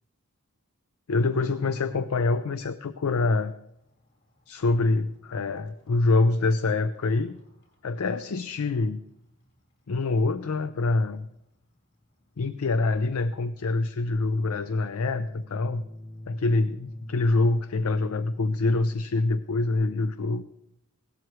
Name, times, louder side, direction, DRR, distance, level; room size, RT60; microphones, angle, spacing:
voice 1, 1.1-3.5 4.5-7.4 7.8-9.0 9.9-11.3 12.4-15.8 16.3-20.4, left 3 dB, 80° left, 12 dB, 0.5 m, -25 dB
sound 1, 2.1-19.5, left 1 dB, 50° left, 3.3 m, -50 dB
17.0 x 12.5 x 3.2 m, 0.82 s
head